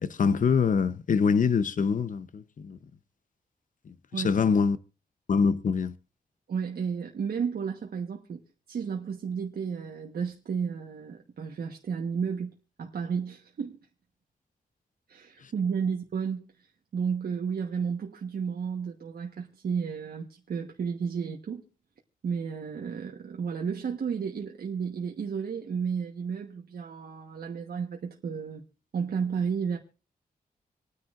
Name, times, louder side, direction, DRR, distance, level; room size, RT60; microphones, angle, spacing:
voice 1, 0.0-2.8 3.9-4.8 5.3-5.9, left 5 dB, 55° left, 0.8 m, -25 dB
voice 2, 6.5-8.4 8.7-13.8 15.1-16.5 16.9-21.6 22.2-28.6 28.9-29.8, right 6 dB, 75° right, 1.2 m, -32 dB
26.5 x 9.8 x 2.5 m
wide cardioid pair, 125°, 16 cm